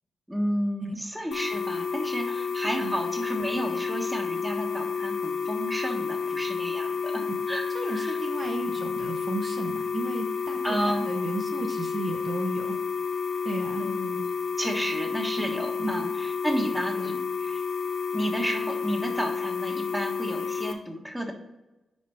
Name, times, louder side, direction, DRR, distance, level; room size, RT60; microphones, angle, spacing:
voice 1, 0.3-8.2 10.6-11.1 13.8-14.3 14.6-16.0 16.4-17.1 17.4-17.6 18.1-21.3, equal, 5° right, 2 dB, 1.2 m, -31 dB
sound 1, 1.3-20.7, left 5 dB, 85° left, 0.6 m, -30 dB
voice 2, 7.7-12.7 13.4-13.9 15.4-16.1 16.9-17.2, right 2 dB, 45° right, 2 dB, 0.9 m, -34 dB
5.4 x 4.9 x 4.5 m, 1.0 s
cardioid pair, 90°, 0 cm